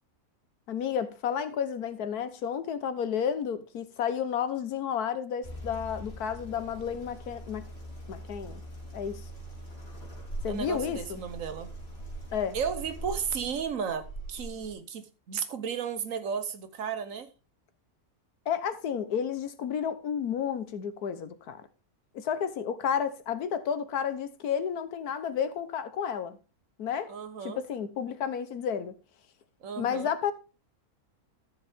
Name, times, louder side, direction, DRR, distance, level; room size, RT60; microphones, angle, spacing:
voice 1, 0.7-7.7 8.1-8.6 8.9-9.2 10.4-11.2 12.3-12.6 18.5-21.6 22.1-26.4 26.8-27.1 27.4-29.0 29.8-30.3, left 8 dB, 80° left, 1.5 m, -31 dB
sound 1, 5.4-14.7, right 1 dB, 40° left, 3.6 m, -42 dB
voice 2, 10.5-11.7 12.5-17.3 27.1-27.6 29.6-30.1, right 7 dB, 60° right, 1.4 m, -34 dB
13.0 x 7.2 x 3.5 m
omnidirectional pair, 1.6 m